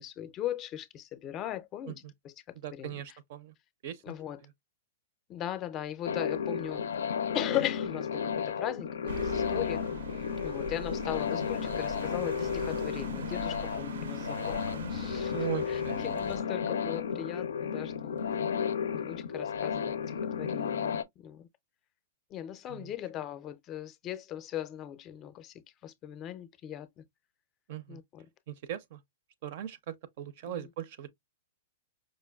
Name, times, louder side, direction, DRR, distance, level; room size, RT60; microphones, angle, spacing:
voice 1, 0.0-3.2 4.0-4.5 5.3-6.9 7.3-9.8 10.4-18.3 18.9-20.0 20.4-21.5 22.3-27.0 27.9-28.3 30.5-30.7, left 11 dB, 30° left, 0.4 m, -38 dB
voice 2, 2.6-3.5 3.8-4.1 15.3-16.2 22.7-22.9 27.7-28.0 28.5-29.0 29.4-31.1, right 11 dB, 55° right, 0.5 m, -39 dB
sound 1, 6.0-21.0, left 7 dB, 90° left, 0.4 m, -33 dB
sound 2, 9.1-16.4, right 3 dB, 90° right, 0.7 m, -42 dB
5.0 x 2.2 x 2.2 m
hypercardioid pair, 140°, 0 cm